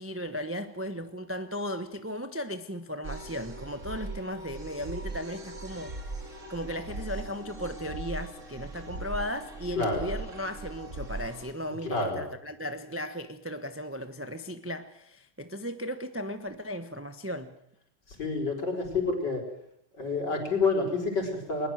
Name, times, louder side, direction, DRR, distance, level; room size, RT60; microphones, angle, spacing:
voice 1, 0.0-6.2 6.5-17.5, equal, 15° right, 8 dB, 0.5 m, -36 dB
sound 1, 3.0-11.5, right 2 dB, 35° right, 2.9 m, -40 dB
voice 2, 9.8-10.1 11.8-12.2 18.2-19.4 20.0-21.7, left 3 dB, 50° left, 2 dB, 5.6 m, -28 dB
21.5 x 20.5 x 7.9 m, 0.76 s
omnidirectional pair, 2.4 m